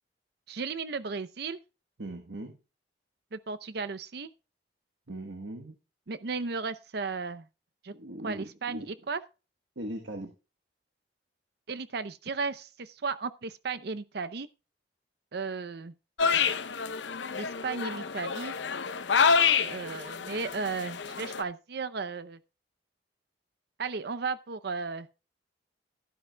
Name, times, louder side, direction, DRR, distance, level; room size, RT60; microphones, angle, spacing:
voice 1, 0.5-1.6 3.3-4.3 6.1-7.5 7.8-7.9 8.2-9.2 11.7-14.5 15.3-15.9 17.3-18.6 19.6-22.4 23.8-25.1, right 4 dB, 60° right, 0.6 m, -35 dB
voice 2, 2.0-2.6 5.1-5.8 7.9-8.9 9.8-10.3, right 1 dB, 80° right, 1.3 m, -39 dB
sound 1, 16.2-21.4, left 6 dB, 85° left, 0.7 m, -28 dB
12.0 x 12.0 x 2.3 m
head